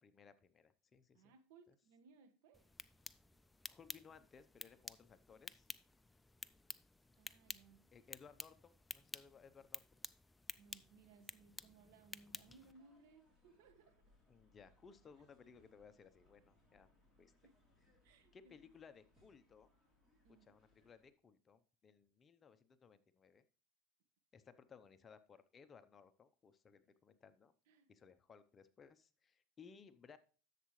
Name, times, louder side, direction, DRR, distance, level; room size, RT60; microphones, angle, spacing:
voice 1, 0.0-1.3 1.7-1.8 3.7-5.7 7.9-9.8 14.3-16.9 17.2-17.3 18.3-19.7 20.4-23.4 24.3-27.5 27.9-30.2, left 6 dB, 25° left, 11 dB, 0.8 m, -62 dB
voice 2, 1.1-2.7 7.2-7.8 10.5-14.0 17.4-17.5 18.0-18.5 20.2-20.5 27.7-27.9, right 4 dB, 70° right, 8 dB, 1.5 m, -65 dB
sound 1, 2.5-12.7, left 2 dB, 10° left, 0.4 m, -53 dB
sound 2, 12.3-21.1, left 2 dB, 5° right, 3.1 m, -74 dB
11.0 x 7.4 x 3.2 m, 0.38 s
supercardioid pair, 125°, 0 cm